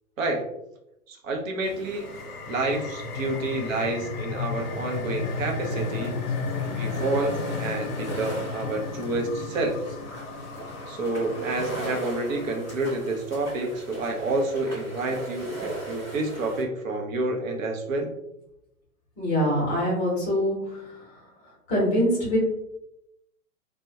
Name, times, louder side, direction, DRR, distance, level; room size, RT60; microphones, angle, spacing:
voice 1, 1.1-2.1 2.5-6.1 6.7-9.7 10.9-18.1, right 2 dB, 60° right, 2 dB, 0.6 m, -29 dB
sound 1, 1.6-16.6, right 2 dB, 5° right, 0.4 m, -39 dB
sound 2, 1.9-13.0, left 4 dB, 70° left, 0.5 m, -34 dB
voice 2, 19.2-20.9 21.7-22.4, equal, 15° left, -5 dB, 0.8 m, -24 dB
2.2 x 2.2 x 2.7 m, 0.84 s
hypercardioid pair, 145°, 45 cm